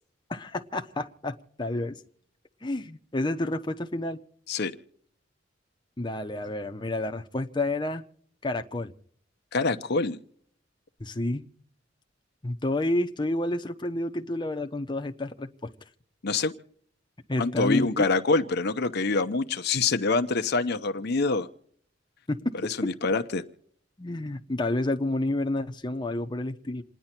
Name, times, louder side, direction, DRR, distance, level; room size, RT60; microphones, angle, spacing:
voice 1, 0.3-2.0 2.6-4.2 6.0-8.0 8.4-8.9 11.0-11.5 12.4-15.7 17.3-18.0 22.3-22.9 24.0-26.8, left 2 dB, 25° left, 0.9 m, -30 dB
voice 2, 9.5-10.2 16.2-16.5 17.4-21.5 22.8-23.4, left 3 dB, 60° left, 0.8 m, -25 dB
28.0 x 10.0 x 4.4 m
head